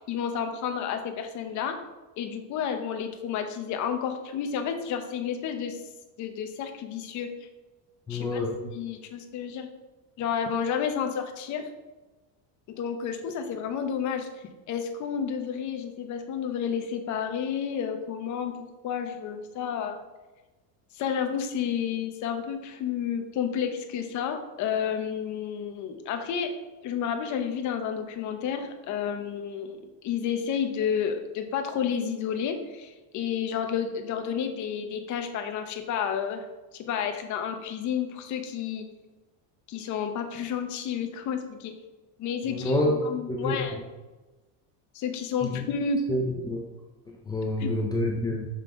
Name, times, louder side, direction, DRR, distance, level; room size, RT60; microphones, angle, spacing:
voice 1, 0.0-1.8 2.2-5.8 6.2-7.3 8.1-9.7 10.2-11.7 12.7-18.5 18.8-20.0 20.9-26.5 26.8-36.4 36.7-38.9 39.7-41.7 42.2-42.7 43.0-43.8 44.9-46.0 47.6-47.7, left 7 dB, 40° left, 6 dB, 0.8 m, -31 dB
voice 2, 8.1-8.6 42.4-42.9 43.3-43.8 45.4-45.6 46.1-46.6 47.3-48.5, left 1 dB, 10° left, -2 dB, 0.3 m, -28 dB
6.8 x 5.6 x 3.6 m, 1.1 s
cardioid pair, 175°, 45 cm